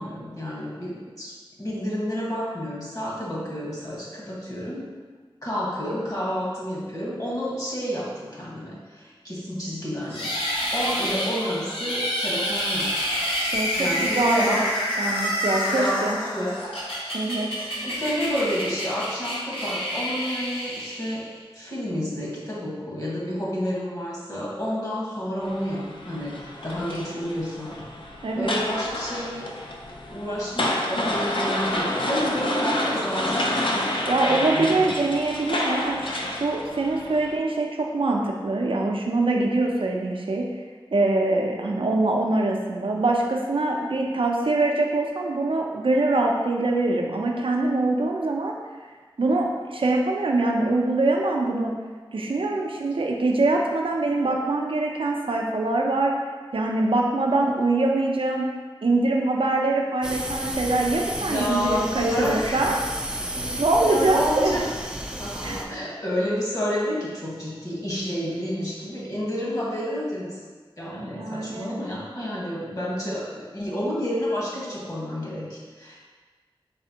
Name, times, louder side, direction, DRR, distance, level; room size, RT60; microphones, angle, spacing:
voice 1, 0.0-1.3 1.6-4.9 5.4-13.1 13.4-14.7 15.6-16.7 17.8-21.2 21.5-27.7 28.4-29.5 30.1-33.7 34.3-35.0 61.1-62.8 63.3-64.6 65.2-70.4 70.8-76.0, equal, 40° left, -6 dB, 1.4 m, -30 dB
sound 1, 10.1-21.4, equal, 80° left, 0.9 m, -28 dB
voice 2, 13.5-14.7 15.0-16.2 17.1-17.7 28.2-28.6 34.0-40.5 40.9-48.6 49.2-51.7 52.1-56.1 56.5-58.5 58.8-62.8 63.6-64.6 65.4-65.6 71.0-71.7, right 2 dB, 70° right, 0 dB, 0.5 m, -24 dB
sound 2, 25.4-37.3, left 1 dB, 65° left, 0.5 m, -29 dB
sound 3, 60.0-65.6, right 1 dB, 10° right, 0.4 m, -32 dB
4.1 x 3.4 x 2.8 m, 1.4 s
wide cardioid pair, 45°, 9 cm